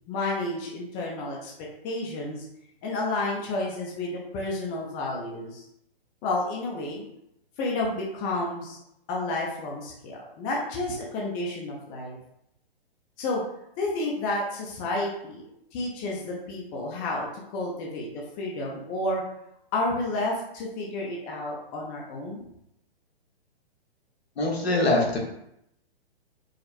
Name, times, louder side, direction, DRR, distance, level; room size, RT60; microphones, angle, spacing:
voice 1, 0.1-1.5 1.8-2.4 2.8-5.7 6.2-7.1 7.6-8.8 9.1-12.2 13.2-13.4 13.8-15.4 15.7-19.2 19.7-22.4, left 2 dB, 25° left, -2 dB, 0.8 m, -31 dB
voice 2, 24.4-25.2, left 2 dB, 75° left, -1 dB, 1.4 m, -23 dB
5.0 x 2.1 x 4.2 m, 0.79 s
hypercardioid pair, 130°, 31 cm